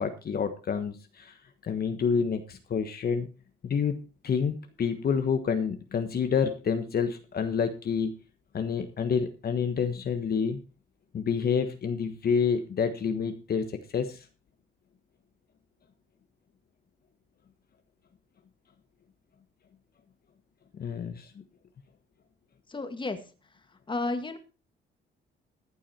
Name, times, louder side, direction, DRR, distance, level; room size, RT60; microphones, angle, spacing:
voice 1, 0.0-1.4 1.6-3.3 3.6-3.9 4.2-8.1 8.5-10.6 11.1-14.2 20.8-21.3, left 6 dB, 50° left, 7 dB, 1.3 m, -28 dB
voice 2, 22.7-23.2 23.9-24.4, left 3 dB, 25° left, 8 dB, 1.9 m, -31 dB
14.5 x 8.6 x 4.4 m, 0.34 s
cardioid pair, 90°, 20 cm